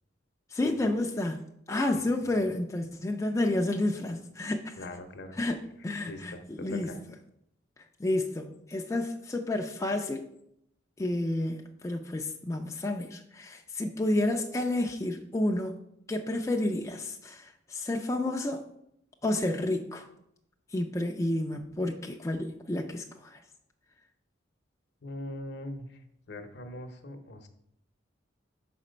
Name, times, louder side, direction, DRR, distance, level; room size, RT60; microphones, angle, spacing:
voice 1, 0.5-1.4 1.7-4.8 5.4-6.9 8.0-10.3 11.0-15.8 16.1-18.6 19.2-20.0 20.7-23.4, left 1 dB, 15° left, 2 dB, 0.4 m, -30 dB
voice 2, 4.8-5.4 6.1-7.0 25.0-26.0 26.3-27.5, left 1 dB, 60° left, 7 dB, 0.8 m, -41 dB
5.9 x 4.2 x 5.1 m, 0.76 s
head